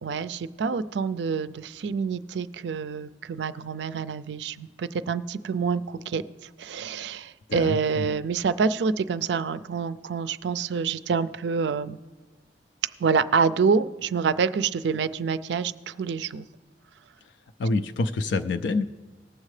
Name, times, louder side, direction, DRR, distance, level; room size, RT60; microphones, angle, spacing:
voice 1, 0.0-6.2 6.6-12.0 13.0-16.5, right 5 dB, 65° right, 14 dB, 0.4 m, -27 dB
voice 2, 7.5-8.2 17.6-18.9, left 3 dB, 70° left, 9 dB, 0.4 m, -27 dB
19.0 x 7.3 x 3.2 m, 1.3 s
head